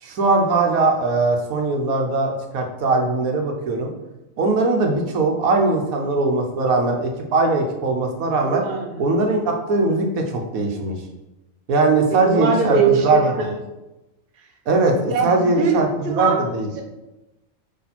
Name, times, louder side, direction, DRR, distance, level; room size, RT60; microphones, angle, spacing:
voice 1, 0.0-3.9 4.4-8.6 9.0-11.0 11.7-12.8 13.0-13.2 14.7-15.9 16.1-16.7, right 3 dB, 85° right, 2 dB, 1.4 m, -20 dB
voice 2, 8.4-9.1 12.0-13.5 15.0-15.7 16.0-16.4 16.8-16.9, right 5 dB, 45° right, 2 dB, 1.0 m, -22 dB
8.4 x 3.4 x 4.3 m, 1.0 s
omnidirectional pair, 1.4 m